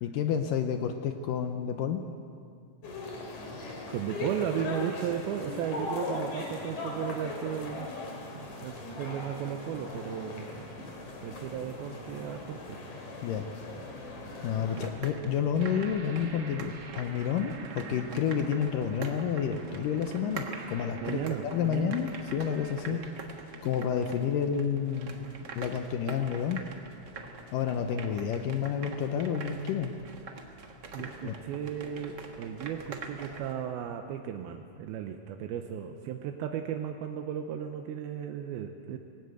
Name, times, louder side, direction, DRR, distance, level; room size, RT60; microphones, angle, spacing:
voice 1, 0.0-2.0 13.2-13.5 14.4-23.0 23.6-25.3 25.6-26.6 27.5-30.0 31.2-31.3, left 8 dB, 75° left, 6 dB, 2.2 m, -30 dB
sound 1, 2.8-14.9, left 2 dB, 50° left, 4.1 m, -39 dB
voice 2, 3.9-7.9 8.3-10.7 11.2-12.8 14.8-14.9 21.0-22.0 22.9-23.1 30.9-39.0, right 9 dB, 85° right, 5 dB, 2.7 m, -35 dB
sound 2, 14.7-33.5, right 4 dB, 70° right, 1.0 m, -45 dB
sound 3, 15.6-22.8, right 4 dB, 50° right, 2.0 m, -46 dB
19.5 x 18.0 x 8.1 m, 2.3 s
omnidirectional pair, 4.3 m